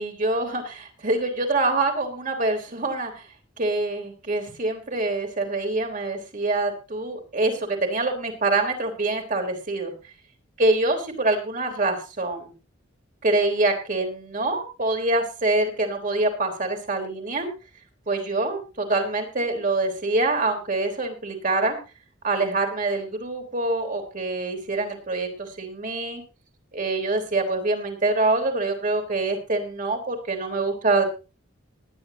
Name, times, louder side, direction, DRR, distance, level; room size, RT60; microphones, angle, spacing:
voice 1, 0.0-3.2 3.6-9.9 10.6-12.5 13.2-17.5 18.1-21.8 22.2-26.2 26.7-31.0, right 2 dB, 45° right, 4 dB, 3.6 m, -25 dB
19.0 x 11.0 x 2.9 m, 0.30 s
head